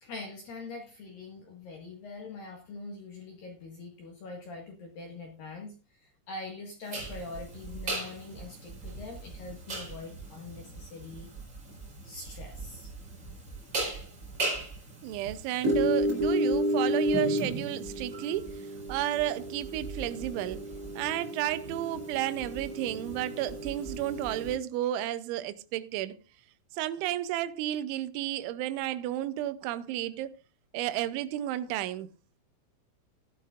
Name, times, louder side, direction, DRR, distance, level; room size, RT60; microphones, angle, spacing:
voice 1, 0.0-11.3 12.0-12.9, left 3 dB, 55° left, 2.8 m, -43 dB
sound 1, 6.9-24.5, right 1 dB, 25° right, 4.9 m, -33 dB
voice 2, 15.0-20.7 21.0-26.2 26.7-30.4 30.7-32.1, right 13 dB, 80° right, 2.9 m, -32 dB
15.5 x 12.5 x 2.5 m
omnidirectional pair, 5.8 m